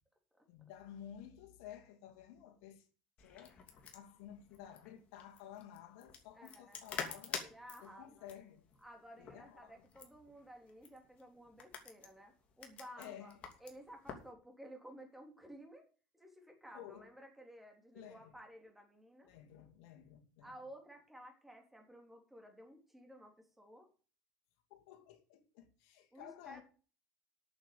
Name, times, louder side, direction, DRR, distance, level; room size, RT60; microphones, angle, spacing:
voice 1, 0.5-2.9 3.2-3.6 3.9-7.4 7.8-8.7 9.2-9.8 13.0-13.4 16.7-17.1 17.9-18.4 19.2-20.5 24.7-26.6, left 10 dB, 70° left, 2.5 m, -53 dB
sound 1, 3.2-14.3, left 6 dB, 40° left, 2.8 m, -49 dB
voice 2, 6.3-6.9 7.4-8.3 8.8-15.9 16.1-19.3 20.4-23.9 26.1-26.6, equal, 5° right, 3.6 m, -55 dB
8.8 x 7.2 x 8.5 m
supercardioid pair, 105°, 3 cm